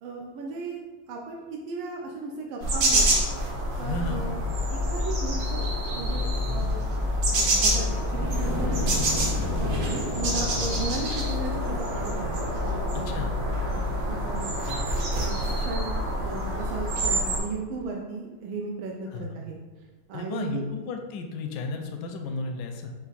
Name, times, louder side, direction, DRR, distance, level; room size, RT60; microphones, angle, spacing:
voice 1, 0.0-3.3 3.8-4.4 4.7-6.8 7.3-8.8 9.6-13.2 13.7-14.5 15.1-19.6 20.1-20.7, right 3 dB, 90° right, 0 dB, 1.4 m, -36 dB
sound 1, 2.6-17.4, equal, 60° right, 1.3 m, -27 dB
voice 2, 3.8-4.4 6.5-6.7 12.9-13.4 14.1-14.3 19.1-19.4 20.1-22.9, left 3 dB, 75° left, 4 dB, 1.1 m, -34 dB
sound 2, 5.8-16.5, left 1 dB, 50° left, 0.6 m, -37 dB
5.1 x 2.5 x 4.0 m, 1.2 s
omnidirectional pair, 2.2 m